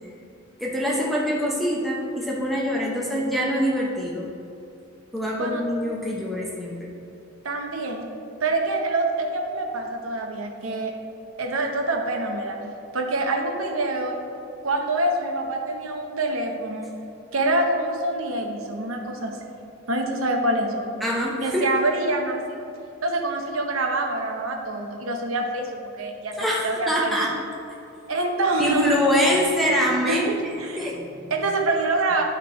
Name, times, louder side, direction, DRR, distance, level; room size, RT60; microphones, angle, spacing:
voice 1, 0.6-4.3 5.1-6.9 21.0-21.8 26.4-27.3 28.6-30.3 30.8-31.3, equal, ahead, -4 dB, 0.7 m, -24 dB
voice 2, 7.4-8.1 8.4-10.9 11.4-12.6 12.9-14.2 14.6-16.9 17.3-19.4 19.9-20.9 21.4-22.6 23.0-26.4 26.6-27.2 28.1-29.0 30.1-30.9 31.3-32.2, right 2 dB, 85° right, 2 dB, 0.9 m, -25 dB
10.0 x 3.7 x 4.3 m, 2.7 s
head